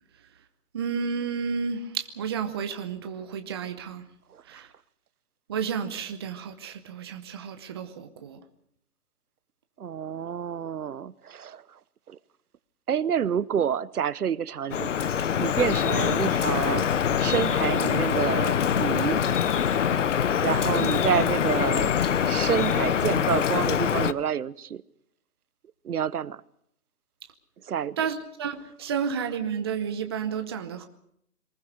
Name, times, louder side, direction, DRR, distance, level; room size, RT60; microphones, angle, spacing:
voice 1, 0.7-4.0 4.5-4.7 5.5-8.4 20.7-20.9 28.0-30.9, right 6 dB, 15° right, 0.8 m, -31 dB
voice 2, 4.3-4.6 9.8-11.8 12.1-12.2 12.9-14.9 15.4-16.9 17.2-19.2 20.4-24.8 25.8-26.4 27.6-28.0, right 8 dB, 75° right, 0.9 m, -28 dB
Drip, 14.7-24.1, left 8 dB, 55° left, 0.9 m, -24 dB
23.0 x 20.0 x 6.6 m
hypercardioid pair, 155°, 45 cm